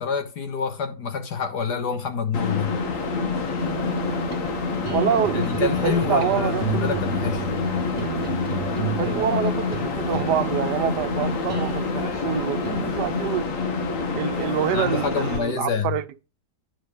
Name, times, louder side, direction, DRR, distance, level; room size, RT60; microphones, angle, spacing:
voice 1, 0.0-2.7 5.3-7.5 14.7-16.0, left 6 dB, 80° left, 2.0 m, -27 dB
sound 1, 2.3-15.4, left 4 dB, 55° left, 1.5 m, -27 dB
sound 2, 3.6-13.3, right 5 dB, 40° right, 1.4 m, -34 dB
voice 2, 4.9-7.0 9.0-13.5 14.1-16.0, right 10 dB, 85° right, 1.3 m, -26 dB
9.8 x 3.9 x 6.6 m
omnidirectional pair, 1.8 m